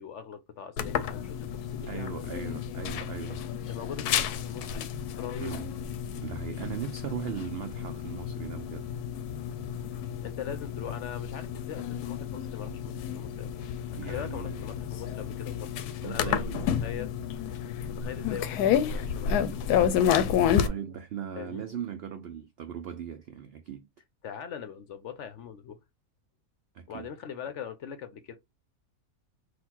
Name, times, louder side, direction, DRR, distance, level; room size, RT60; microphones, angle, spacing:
voice 1, 0.0-2.3 3.7-5.5 10.2-13.6 14.0-16.5 16.8-17.4 17.8-19.7 21.4-21.6 24.2-25.8 26.9-28.4, left 8 dB, 65° left, 0.8 m, -41 dB
sound 1, 0.8-20.7, left 9 dB, 85° left, 1.1 m, -31 dB
voice 2, 1.9-3.4 5.4-5.7 6.2-8.9 14.0-14.6 16.0-16.7 20.6-23.9 26.7-27.1, right 8 dB, 80° right, 0.5 m, -38 dB
4.0 x 2.5 x 4.3 m
omnidirectional pair, 1.6 m